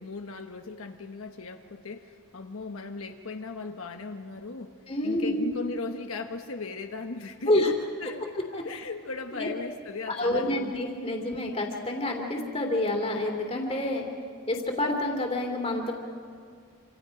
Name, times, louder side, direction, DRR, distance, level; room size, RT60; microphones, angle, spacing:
voice 1, 0.0-4.8 5.0-7.8 8.0-8.3 8.6-10.8 11.0-11.4, left 3 dB, 80° left, 5 dB, 1.1 m, -38 dB
voice 2, 4.9-5.5 7.5-7.7 8.5-8.6 9.3-9.5 10.1-14.0 14.5-15.9, left 1 dB, 25° left, 2 dB, 2.5 m, -28 dB
28.0 x 26.0 x 5.1 m, 2.2 s
head